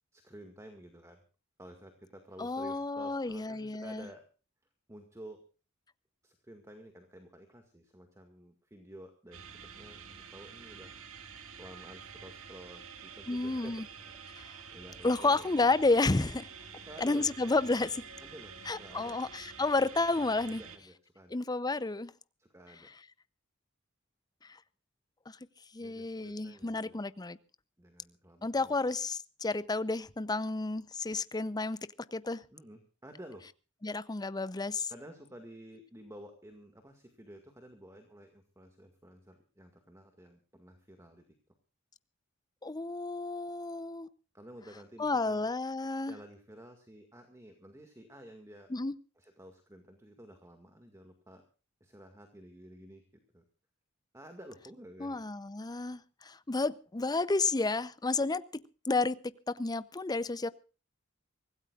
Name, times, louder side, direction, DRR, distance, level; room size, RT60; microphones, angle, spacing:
voice 1, 0.1-1.2 1.6-4.2 4.9-5.4 6.2-10.9 11.6-14.3 14.7-15.6 16.7-17.3 18.2-19.2 20.5-21.4 22.4-22.9 25.8-27.0 27.8-28.8 32.5-33.5 34.9-41.2 44.3-45.5 46.1-48.7 49.2-51.4 51.8-53.0 53.3-53.4 54.1-55.2, right 1 dB, 15° right, 5 dB, 2.0 m, -52 dB
voice 2, 2.4-4.1 13.3-13.8 14.3-14.5 15.0-16.5 17.0-18.0 18.7-20.6 21.3-22.1 25.3-25.4 25.7-27.4 28.4-32.4 33.8-34.9 42.6-44.1 45.0-46.2 48.7-49.0 55.0-60.5, left 3 dB, 20° left, 16 dB, 0.6 m, -31 dB
sound 1, 9.3-20.8, right 6 dB, 80° right, 2.1 m, -49 dB
25.0 x 16.5 x 2.5 m, 0.35 s
head